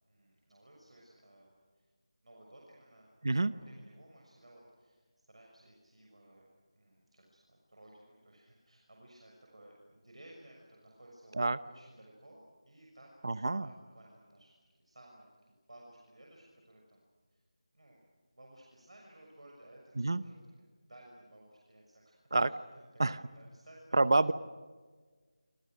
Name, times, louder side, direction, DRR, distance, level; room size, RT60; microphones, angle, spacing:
voice 1, 0.1-1.9 2.2-6.5 6.7-14.5 14.8-15.3 15.7-17.0 17.3-17.4 17.7-18.0 18.3-20.4 20.8-24.2, right 1 dB, 75° right, -1 dB, 6.6 m, -58 dB
voice 2, 13.2-13.7 20.0-20.2 22.3-22.5 23.0-23.2 23.9-24.3, right 2 dB, 45° right, 16 dB, 0.9 m, -28 dB
28.5 x 27.0 x 6.4 m, 1.4 s
figure-of-eight pair, 175°, 3 cm